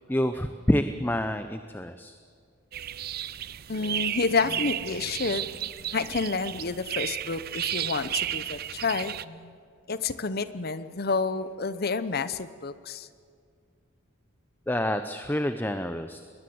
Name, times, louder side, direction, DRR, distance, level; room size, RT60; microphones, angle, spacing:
voice 1, 0.1-2.2 14.7-16.2, left 1 dB, 10° left, 9 dB, 0.6 m, -27 dB
sound 1, 2.7-9.2, right 11 dB, 50° right, 0.5 m, -33 dB
voice 2, 3.7-5.7 5.9-9.6 9.9-13.1, left 4 dB, 50° left, 14 dB, 0.9 m, -29 dB
20.5 x 20.0 x 7.9 m, 2.2 s
head